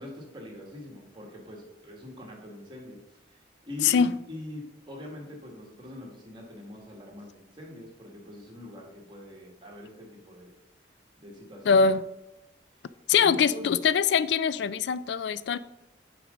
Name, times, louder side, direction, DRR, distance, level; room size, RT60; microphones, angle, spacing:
voice 1, 0.0-10.6 11.2-11.8 12.7-12.8 13.2-13.7, left 1 dB, 25° right, 1.7 m, -43 dB
voice 2, 11.7-12.0 13.1-15.6, left 6 dB, 65° left, 0.3 m, -23 dB
7.6 x 5.2 x 5.1 m
head